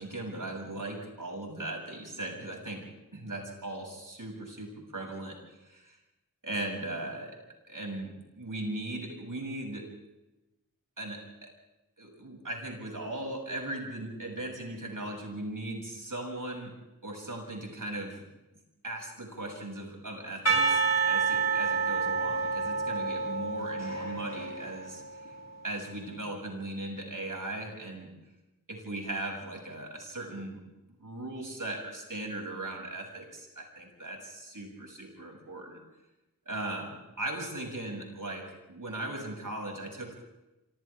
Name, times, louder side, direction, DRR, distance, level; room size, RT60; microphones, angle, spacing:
voice 1, 0.0-2.9 3.1-6.0 6.4-7.4 7.7-9.9 11.0-11.5 12.0-16.7 17.0-18.3 18.8-25.3 25.6-28.1 28.7-30.6 31.0-35.8 36.5-40.2, right 2 dB, 70° right, 0 dB, 7.5 m, -38 dB
Percussion / Church bell, 20.5-25.5, right 5 dB, 55° left, 3.3 m, -29 dB
27.0 x 26.5 x 3.7 m, 0.99 s
wide cardioid pair, 55°, 33 cm